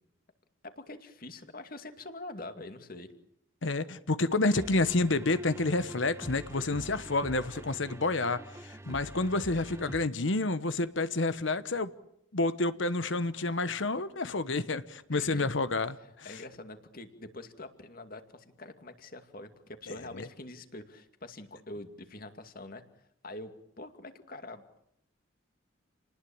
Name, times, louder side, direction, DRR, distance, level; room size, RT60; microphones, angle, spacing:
voice 1, 0.6-3.1 15.1-15.5 16.0-22.8 23.2-24.6, left 2 dB, 45° left, 2.4 m, -45 dB
voice 2, 3.6-11.9 12.3-16.3 20.1-20.3, left 2 dB, 70° left, 1.1 m, -29 dB
sound 1, 4.5-10.0, right 1 dB, 15° right, 1.3 m, -45 dB
29.5 x 19.5 x 8.7 m
head